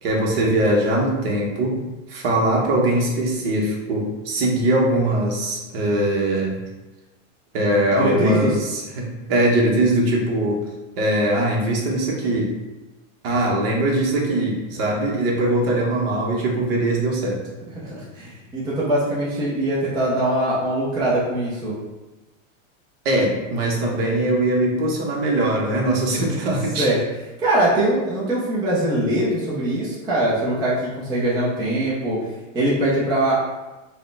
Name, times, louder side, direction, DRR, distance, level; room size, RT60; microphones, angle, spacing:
voice 1, 0.0-1.8 2.1-6.6 7.5-10.6 11.0-12.5 13.2-17.4 23.0-26.9, right 1 dB, 50° right, -1 dB, 0.9 m, -21 dB
voice 2, 8.0-8.5 17.7-21.8 26.8-27.0 27.4-32.2 32.5-33.4, right 1 dB, 10° right, -8 dB, 0.5 m, -22 dB
4.7 x 2.2 x 3.3 m, 1.1 s
supercardioid pair, 160°, 39 cm